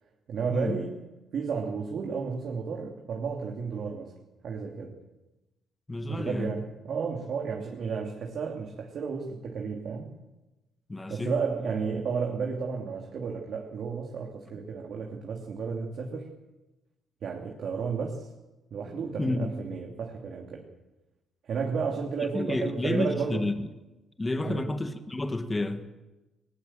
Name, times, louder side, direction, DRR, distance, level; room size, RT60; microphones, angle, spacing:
voice 1, 0.3-0.9 1.3-4.1 4.4-5.0 6.1-10.1 11.1-16.3 17.2-18.3 18.7-20.6 21.4-23.5 24.4-24.7, right 5 dB, 60° right, 3.0 m, -32 dB
voice 2, 5.9-6.6 10.9-11.3 18.9-19.6 22.3-23.7 24.2-25.9, left 2 dB, 20° left, 1.9 m, -30 dB
20.0 x 20.0 x 7.5 m
cardioid pair, 90°, 0 cm